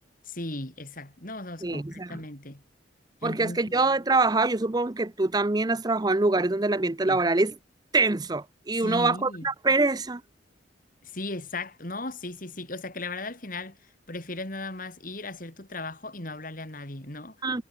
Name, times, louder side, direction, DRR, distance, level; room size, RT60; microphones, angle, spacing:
voice 1, 0.2-2.6 3.2-3.6 7.1-7.2 8.8-9.5 11.0-13.8 14.1-17.5, left 2 dB, 45° left, 3.9 m, -37 dB
voice 2, 1.6-2.2 3.2-7.5 7.9-10.2 17.4-17.6, right 3 dB, 20° right, 0.6 m, -24 dB
head